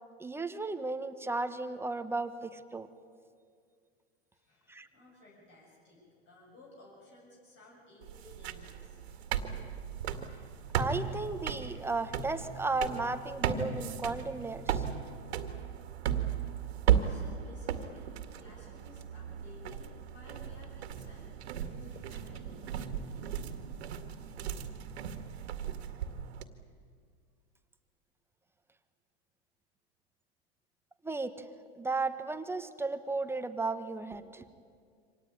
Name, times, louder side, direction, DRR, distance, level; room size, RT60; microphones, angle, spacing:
voice 1, 0.2-2.9 4.7-4.9 10.8-14.8 31.0-31.3 31.8-34.4, right 3 dB, 5° right, 10 dB, 1.3 m, -34 dB
voice 2, 4.3-9.2 17.0-21.3 21.6-22.9, left 2 dB, 35° left, -4 dB, 7.7 m, -57 dB
sound 1, 8.0-26.4, right 9 dB, 70° right, 2.0 m, -36 dB
25.5 x 18.5 x 9.9 m, 2.2 s
hypercardioid pair, 115°, 33 cm